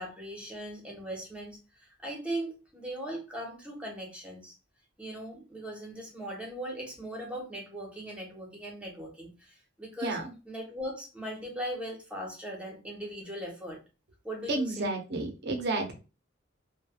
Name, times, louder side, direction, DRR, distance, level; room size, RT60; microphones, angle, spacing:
voice 1, 0.0-4.5 5.0-10.2 10.4-13.8 14.2-14.9, right 1 dB, 5° right, -1 dB, 0.9 m, -39 dB
voice 2, 10.0-10.3 14.5-15.9, right 2 dB, 60° right, 3 dB, 0.7 m, -31 dB
3.1 x 2.2 x 2.2 m, 0.31 s
head